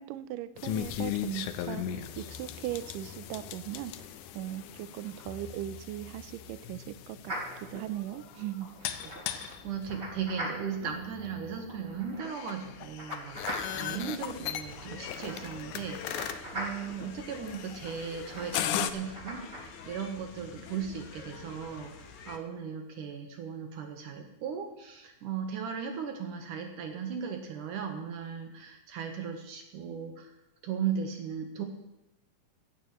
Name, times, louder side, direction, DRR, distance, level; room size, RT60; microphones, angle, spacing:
voice 1, 0.0-4.1 4.4-7.3 7.7-8.7, right 14 dB, 85° right, 13 dB, 1.9 m, -38 dB
sound 1, 0.6-18.9, left 11 dB, 90° left, 1.8 m, -38 dB
sound 2, 7.2-19.6, right 1 dB, 20° right, 4.1 m, -43 dB
voice 2, 9.0-13.4 13.7-30.3 30.6-31.6, right 7 dB, 70° right, 4 dB, 2.3 m, -37 dB
sound 3, 13.3-22.4, left 5 dB, 65° left, 2.1 m, -47 dB
16.0 x 15.5 x 3.1 m, 0.90 s
omnidirectional pair, 4.5 m